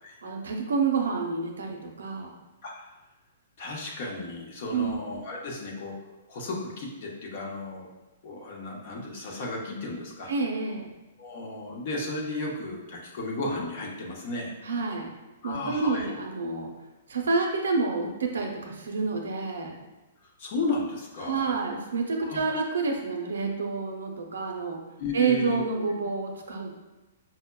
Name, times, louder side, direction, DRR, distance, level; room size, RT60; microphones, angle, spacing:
voice 1, 0.2-2.4 4.7-5.0 10.3-10.9 14.6-15.1 15.4-16.7 17.1-19.8 21.2-24.8 25.1-26.7, right 4 dB, 90° right, 2 dB, 0.6 m, -28 dB
voice 2, 3.6-6.0 6.3-7.9 8.2-10.3 11.2-14.5 15.4-16.1 20.4-21.5 22.2-22.4 25.0-25.6, left 2 dB, 50° left, -1 dB, 0.8 m, -34 dB
5.5 x 2.1 x 2.2 m, 1.1 s
hypercardioid pair, 150°, 0 cm